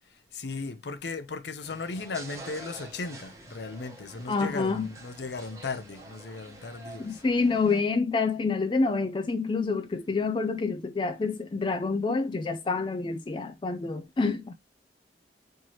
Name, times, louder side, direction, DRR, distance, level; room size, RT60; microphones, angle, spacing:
voice 1, 0.3-7.2, left 4 dB, 70° left, 0.6 m, -36 dB
sound 1, 1.6-7.8, right 2 dB, 15° right, 0.9 m, -47 dB
voice 2, 4.3-4.9 7.0-14.5, left 4 dB, 25° left, 0.3 m, -27 dB
4.4 x 2.9 x 3.0 m
head